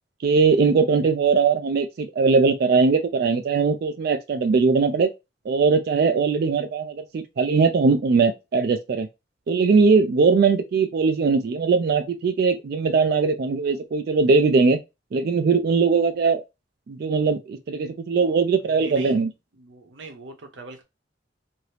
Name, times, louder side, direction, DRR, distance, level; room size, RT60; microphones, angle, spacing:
voice 1, 0.2-5.1 5.5-9.1 9.5-14.8 15.1-16.4 16.9-19.3, right 4 dB, 55° right, 0.3 m, -20 dB
voice 2, 18.8-19.3 19.5-20.8, right 3 dB, 85° right, 0.8 m, -41 dB
2.8 x 2.6 x 3.2 m
head